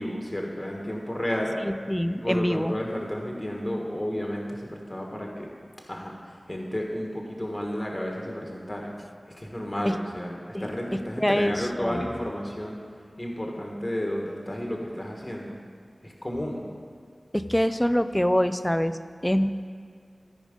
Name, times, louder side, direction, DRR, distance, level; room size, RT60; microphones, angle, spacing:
voice 1, 0.0-1.5 2.1-5.5 5.9-6.1 6.5-8.9 9.3-12.8 13.2-15.5 16.0-16.6, equal, 25° left, 0 dB, 1.3 m, -32 dB
voice 2, 1.6-2.7 9.8-9.9 10.5-10.7 11.2-12.1 17.3-19.0 19.2-19.5, equal, 10° left, 11 dB, 0.4 m, -24 dB
13.5 x 5.0 x 5.2 m, 2.2 s
wide cardioid pair, 60°, 0 cm